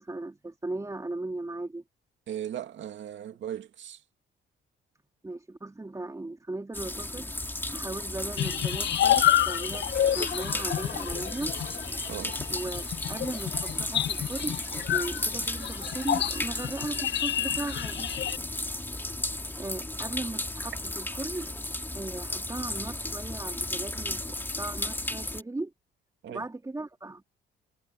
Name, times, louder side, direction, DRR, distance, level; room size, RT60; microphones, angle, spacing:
voice 1, 0.0-1.8 5.2-7.3 7.7-11.5 12.5-18.1 19.6-21.5 21.9-25.7 26.3-27.3, right 2 dB, 15° right, 3.3 m, -37 dB
voice 2, 2.3-4.0 12.1-12.4 26.2-26.5, right 10 dB, 70° right, 2.4 m, -37 dB
sound 1, 6.7-25.4, left 1 dB, 10° left, 2.2 m, -34 dB
sound 2, 8.4-18.4, left 11 dB, 60° left, 0.9 m, -29 dB
cardioid pair, 90°, 20 cm